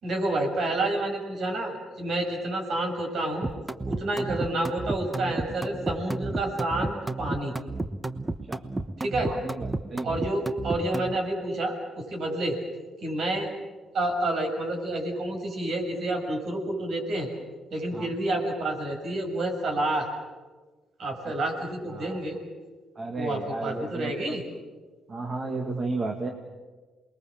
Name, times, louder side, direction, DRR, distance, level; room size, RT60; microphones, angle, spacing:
voice 1, 0.0-3.4 3.8-7.5 9.0-9.3 10.0-12.6 13.0-13.5 13.9-17.3 17.7-20.1 21.0-22.4 23.1-24.4, right 1 dB, 60° right, 3 dB, 6.6 m, -29 dB
sound 1, 3.4-11.2, right 2 dB, 20° right, 1.1 m, -31 dB
voice 2, 9.2-10.2 17.9-18.1 21.2-21.3 21.9-22.2 23.0-24.4 25.1-26.3, right 3 dB, 40° right, 2 dB, 2.3 m, -33 dB
28.0 x 21.5 x 7.5 m, 1.3 s
cardioid pair, 90°, 0 cm